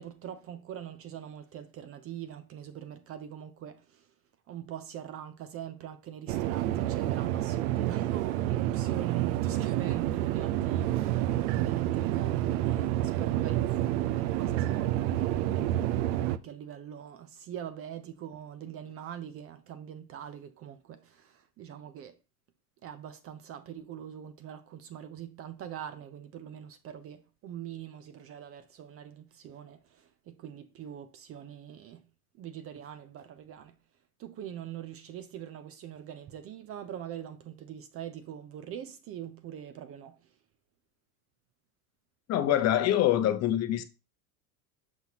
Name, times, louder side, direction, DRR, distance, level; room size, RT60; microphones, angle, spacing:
voice 1, 0.0-4.1 4.5-22.2 22.8-32.1 32.3-33.8 34.2-40.3, right 10 dB, 30° right, 0.5 m, -43 dB
sound 1, 6.3-16.4, right 13 dB, 85° right, 0.6 m, -29 dB
voice 2, 42.3-43.8, left 12 dB, 35° left, 0.7 m, -25 dB
6.1 x 5.5 x 2.8 m
supercardioid pair, 130°, 44 cm